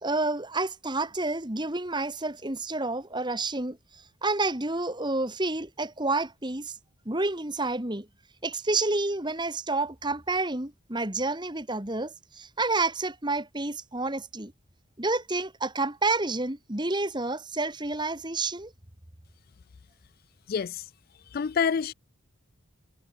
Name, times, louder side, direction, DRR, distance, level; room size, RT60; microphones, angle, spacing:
voice 1, 0.0-6.8 7.1-8.1 8.4-14.5 15.0-18.7, right 2 dB, 20° right, 2.0 m, -29 dB
voice 2, 20.5-20.8 21.3-21.9, left 6 dB, 45° left, 0.3 m, -27 dB
head